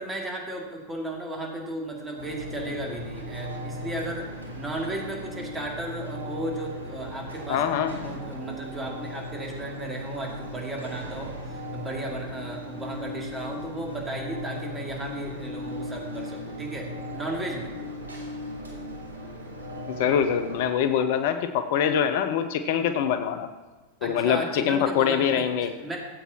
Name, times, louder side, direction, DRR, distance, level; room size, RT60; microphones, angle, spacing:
voice 1, 0.0-4.3 4.5-17.7 24.0-26.0, right 1 dB, 15° right, -1 dB, 2.7 m, -35 dB
sound 1, 2.2-20.7, left 1 dB, 90° left, 2.9 m, -37 dB
voice 2, 7.5-7.9 19.9-23.5 24.0-25.7, left 8 dB, 50° left, 9 dB, 0.6 m, -24 dB
17.0 x 8.1 x 3.0 m, 1.3 s
figure-of-eight pair, 90°, 0 cm